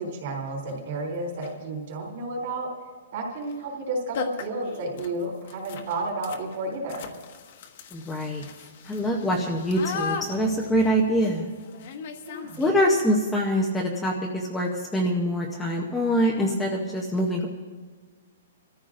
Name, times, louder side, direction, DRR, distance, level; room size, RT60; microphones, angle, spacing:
voice 1, 0.0-2.7 3.1-7.1 12.3-12.6, right 2 dB, 40° right, -1 dB, 3.8 m, -32 dB
sound 1, 0.7-0.8 1.3-1.7 3.4-3.6 3.8-3.9 4.1-13.0, left 6 dB, 40° left, 1.1 m, -38 dB
voice 2, 7.9-8.4 8.8-11.5 12.6-17.5, equal, 5° left, -2 dB, 0.7 m, -24 dB
27.5 x 14.0 x 2.6 m, 1.5 s
hypercardioid pair, 175°, 0 cm